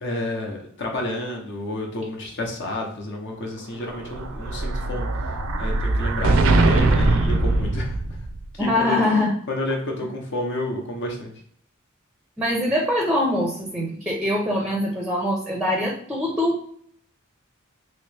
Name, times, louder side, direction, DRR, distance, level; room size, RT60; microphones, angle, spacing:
voice 1, 0.0-5.1 5.6-8.0 8.5-9.0 9.5-11.3, left 1 dB, 55° left, 0 dB, 0.8 m, -30 dB
Explosion, 3.8-8.5, right 2 dB, 70° right, 0.4 m, -21 dB
voice 2, 8.6-9.3 12.4-16.6, left 1 dB, 5° right, -2 dB, 0.5 m, -23 dB
3.0 x 2.9 x 3.3 m, 0.62 s
head